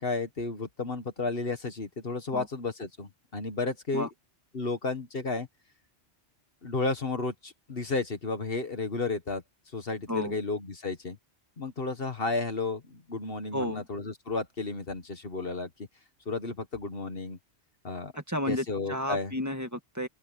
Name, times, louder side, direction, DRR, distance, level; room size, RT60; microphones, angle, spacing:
voice 1, 0.0-4.1 4.5-5.5 6.6-9.4 9.7-11.2 11.6-15.7 16.3-17.4 17.8-18.1 18.5-19.3, left 3 dB, 55° left, 1.8 m, -32 dB
voice 2, 13.5-13.8 18.2-20.1, left 1 dB, 15° right, 2.1 m, -32 dB
open air
omnidirectional pair, 1.2 m